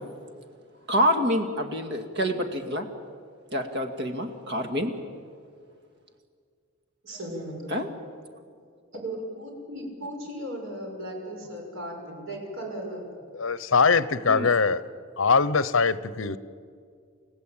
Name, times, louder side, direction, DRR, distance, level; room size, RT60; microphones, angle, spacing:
voice 1, 0.9-2.9 3.5-4.9 7.7-7.9 14.3-14.5, equal, 55° right, 6 dB, 2.2 m, -27 dB
voice 2, 7.0-7.7 8.9-13.0, right 1 dB, 75° right, 1 dB, 6.2 m, -36 dB
voice 3, 13.3-14.8 15.2-16.4, left 5 dB, 70° left, 16 dB, 0.8 m, -22 dB
30.0 x 15.5 x 8.8 m, 2.2 s
head